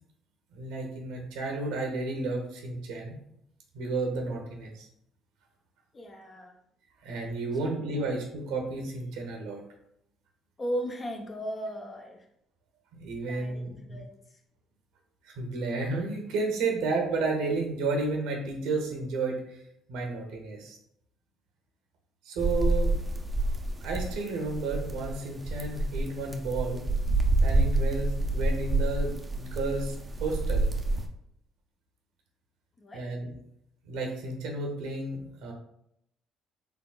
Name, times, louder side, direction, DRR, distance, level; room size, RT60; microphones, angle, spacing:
voice 1, 0.5-3.2 3.7-4.9 7.0-9.6 12.9-14.0 15.2-19.6 19.9-20.8 22.2-23.0 23.8-26.8 27.4-30.0 30.2-30.7 32.9-33.3 33.8-35.5, right 3 dB, 85° right, 2 dB, 0.8 m, -32 dB
voice 2, 5.9-6.6 7.5-8.1 10.6-12.3 13.2-14.2 32.8-33.1, equal, 30° left, 3 dB, 0.7 m, -37 dB
sound 1, 22.4-31.1, right 2 dB, 20° right, 0.5 m, -28 dB
3.5 x 3.4 x 2.3 m, 0.76 s
supercardioid pair, 75°, 0 cm